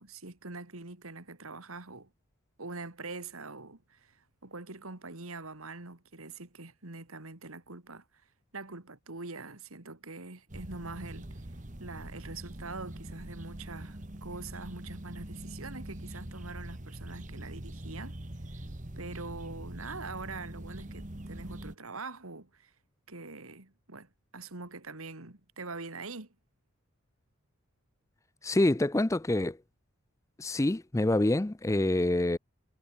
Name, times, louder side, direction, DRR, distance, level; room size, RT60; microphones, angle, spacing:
voice 1, 0.0-2.1 2.6-8.2 8.5-18.2 19.0-22.7 23.1-26.3, right 3 dB, 85° right, 2.6 m, -44 dB
sound 1, 10.5-21.8, right 1 dB, 35° right, 1.7 m, -43 dB
voice 2, 28.4-29.6 30.4-32.4, left 1 dB, 15° left, 0.4 m, -26 dB
head